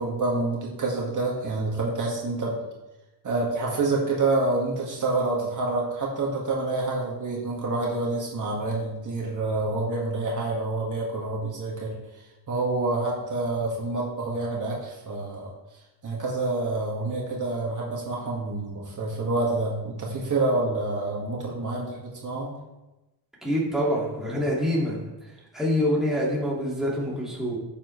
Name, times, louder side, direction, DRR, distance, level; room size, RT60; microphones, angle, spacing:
voice 1, 0.0-2.6 3.2-12.0 12.5-15.5 16.0-22.5, right 2 dB, 45° right, -3 dB, 1.8 m, -27 dB
voice 2, 23.4-25.1 25.5-27.6, equal, ahead, -6 dB, 2.1 m, -25 dB
10.5 x 7.3 x 3.2 m, 1.0 s
wide cardioid pair, 160°, 43 cm